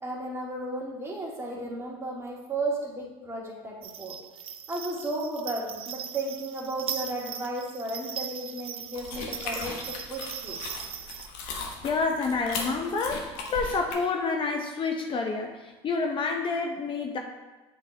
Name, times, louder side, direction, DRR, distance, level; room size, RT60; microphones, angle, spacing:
voice 1, 0.0-4.1 4.7-10.6, right 2 dB, 20° right, -3 dB, 1.9 m, -34 dB
sound 1, 3.8-11.3, right 8 dB, 40° right, 0.6 m, -39 dB
sound 2, 8.9-13.9, left 3 dB, 65° left, 1.2 m, -37 dB
voice 2, 11.8-17.2, left 4 dB, 35° left, 3 dB, 0.7 m, -28 dB
8.4 x 4.3 x 3.3 m, 1.2 s
hypercardioid pair, 85°, 14 cm